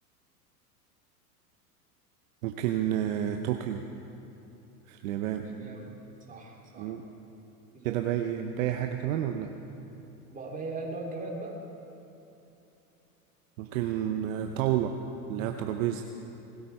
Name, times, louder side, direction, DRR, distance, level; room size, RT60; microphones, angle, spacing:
voice 1, 2.4-3.9 4.9-5.5 6.8-7.0 7.8-9.5 13.6-14.9 15.3-16.0, right 11 dB, 55° right, 5 dB, 0.9 m, -30 dB
voice 2, 5.3-5.9 6.3-6.9 7.7-8.0 10.3-11.6, right 2 dB, 15° right, -2 dB, 2.9 m, -39 dB
20.0 x 13.0 x 4.4 m, 2.9 s
hypercardioid pair, 95°, 47 cm